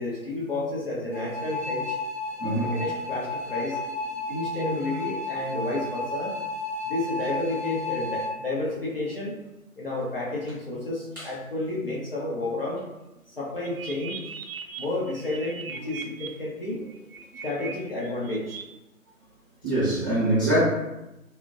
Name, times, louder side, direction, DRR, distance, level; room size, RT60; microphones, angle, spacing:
voice 1, 0.0-2.0 2.8-3.8 4.3-6.4 6.8-9.3 9.8-12.8 13.3-14.2 14.8-16.8 17.4-18.6, left 2 dB, 45° left, -6 dB, 0.5 m, -31 dB
sound 1, 1.1-8.3, left 2 dB, 20° left, 0.8 m, -32 dB
voice 2, 2.4-2.8 11.2-11.3 15.8-16.0 19.6-20.6, right 1 dB, 15° right, -14 dB, 0.6 m, -24 dB
sound 2, 13.6-16.3 16.9-17.7 18.0-18.6, right 7 dB, 70° right, 0.5 m, -39 dB
2.6 x 2.0 x 2.3 m, 0.95 s
figure-of-eight pair, 150°, 43 cm